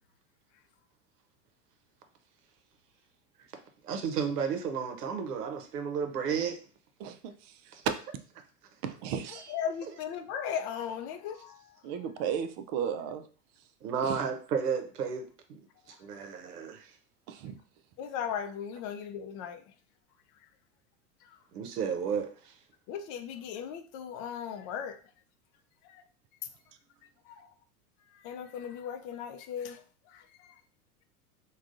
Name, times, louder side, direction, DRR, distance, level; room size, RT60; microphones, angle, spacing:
voice 1, 3.8-6.6 7.7-7.8 13.8-15.6 15.9-16.9 21.5-22.5, right 6 dB, 85° right, 0.7 m, -33 dB
voice 2, 7.0-7.7 8.8-9.6 11.8-13.3 14.0-14.2 17.3-17.5, right 8 dB, 45° right, 0.4 m, -35 dB
voice 3, 9.5-11.8 18.0-19.6 21.2-21.4 22.9-25.0 25.8-26.0 27.3-27.5 28.1-29.8 30.1-30.6, left 8 dB, 45° left, 0.5 m, -37 dB
3.4 x 2.3 x 2.5 m
hypercardioid pair, 95°, 45 cm